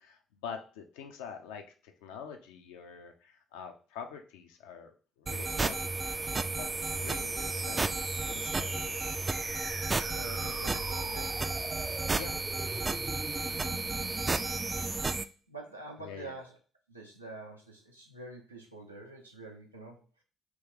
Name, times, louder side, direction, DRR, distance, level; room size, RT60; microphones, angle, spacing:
voice 1, 0.0-5.9 6.5-7.9 8.2-9.0 12.1-12.4 16.0-16.3, left 7 dB, 70° left, 5 dB, 0.5 m, -45 dB
sound 1, 5.3-15.3, right 3 dB, 25° right, 0.3 m, -32 dB
voice 2, 10.1-11.4 13.6-13.9 15.5-16.5 16.9-20.0, right 2 dB, 90° right, 0 dB, 0.6 m, -46 dB
3.0 x 3.0 x 3.6 m, 0.38 s
figure-of-eight pair, 45°, 0 cm